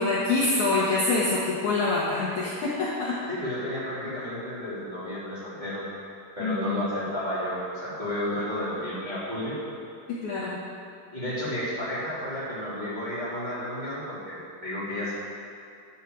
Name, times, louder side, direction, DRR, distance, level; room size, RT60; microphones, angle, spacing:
voice 1, 0.0-3.2 6.4-6.8 10.1-10.6, left 3 dB, 60° left, -6 dB, 2.2 m, -26 dB
voice 2, 3.3-5.8 6.4-9.6 11.1-15.1, left 1 dB, 10° right, -10 dB, 3.2 m, -32 dB
11.0 x 8.4 x 7.2 m, 2.4 s
omnidirectional pair, 4.8 m